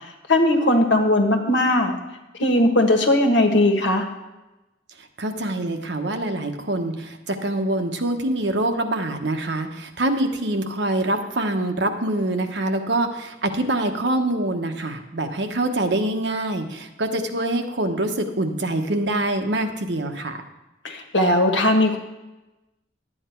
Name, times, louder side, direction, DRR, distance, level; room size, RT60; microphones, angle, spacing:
voice 1, 0.3-1.9 2.4-4.0 20.8-22.0, left 1 dB, 80° left, 4 dB, 1.5 m, -18 dB
voice 2, 5.2-20.4, right 1 dB, 65° right, 5 dB, 1.0 m, -25 dB
11.5 x 8.9 x 4.5 m, 1.0 s
head